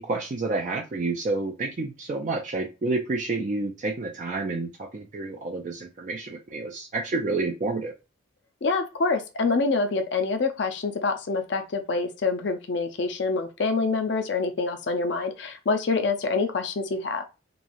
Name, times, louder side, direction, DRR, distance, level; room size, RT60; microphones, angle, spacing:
voice 1, 0.0-7.9, right 3 dB, 35° right, 0.3 m, -29 dB
voice 2, 8.6-17.2, left 4 dB, 60° left, 0.4 m, -26 dB
3.0 x 2.3 x 2.5 m
head